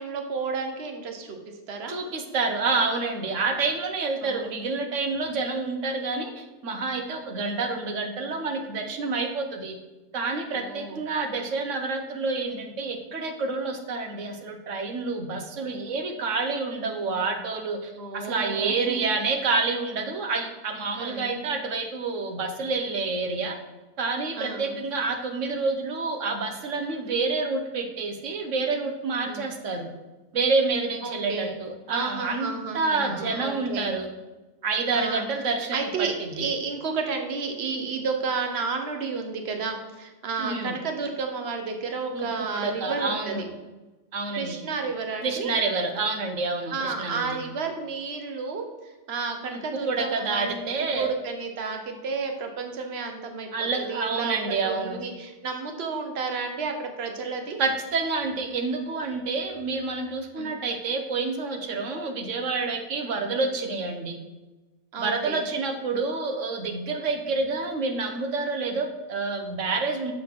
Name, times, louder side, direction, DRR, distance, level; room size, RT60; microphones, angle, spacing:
voice 1, 0.0-2.0 4.2-4.5 10.5-11.0 16.8-17.2 18.0-19.1 21.0-21.4 24.4-24.8 29.2-29.5 31.0-31.6 31.9-33.9 34.9-35.3 35.7-43.3 44.4-45.5 46.7-48.7 49.1-57.6 60.4-60.5 64.9-65.4 67.3-67.4, right 4 dB, 60° right, 4 dB, 1.2 m, -32 dB
voice 2, 1.9-9.7 10.1-23.6 24.0-29.9 30.3-32.5 32.7-34.1 34.6-36.5 40.4-40.7 42.1-42.3 42.5-43.4 44.1-44.6 45.2-47.4 49.5-51.1 53.5-55.0 57.6-64.2 65.0-70.1, right 3 dB, 85° right, 5 dB, 1.4 m, -28 dB
6.7 x 5.3 x 6.0 m, 1.1 s
omnidirectional pair, 1.3 m